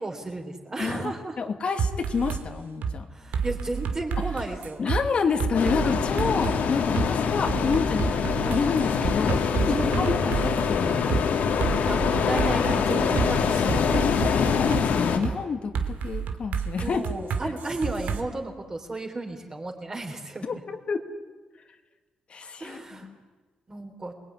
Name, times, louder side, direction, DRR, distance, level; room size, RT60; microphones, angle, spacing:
voice 1, 0.0-1.4 3.1-4.9 9.7-10.2 11.9-14.0 16.8-20.6 22.6-23.1 23.7-24.1, right 2 dB, 25° right, 3 dB, 4.0 m, -33 dB
voice 2, 0.8-3.1 4.2-4.3 4.8-11.1 14.3-17.0 17.4-17.5 20.4-21.0 22.3-23.2, left 5 dB, 45° left, 5 dB, 1.9 m, -29 dB
sound 1, 1.8-2.4 2.8-3.0 3.3-5.0 5.4-6.6 7.0-7.1 7.5-10.7 11.1-11.2 11.6-13.3 13.7-14.8 15.2-15.4 15.7-18.2, right 6 dB, 85° right, 2.4 m, -29 dB
sound 2, 5.5-15.2, left 6 dB, 85° left, 2.9 m, -24 dB
27.5 x 20.5 x 9.8 m, 1.3 s
wide cardioid pair, 145°, 3 cm